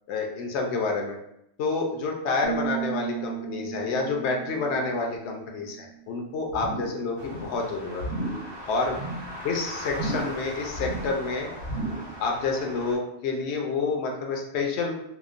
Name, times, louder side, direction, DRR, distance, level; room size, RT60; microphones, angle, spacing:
voice 1, 0.1-1.2 1.6-8.0 8.7-9.0 9.4-11.5 12.2-14.9, left 3 dB, 75° left, 1 dB, 0.8 m, -28 dB
sound 1, 2.4-6.1, right 11 dB, 45° left, 0.5 m, -35 dB
sound 2, 6.5-7.0 7.3-7.6 8.0-8.5 8.8-9.3 9.9-10.4 10.7-11.2 11.6-12.1 12.5-12.6, right 2 dB, 70° right, 0.9 m, -33 dB
sound 3, 7.2-12.9, equal, 30° right, 0.5 m, -40 dB
2.9 x 2.0 x 2.4 m, 0.78 s
omnidirectional pair, 1.2 m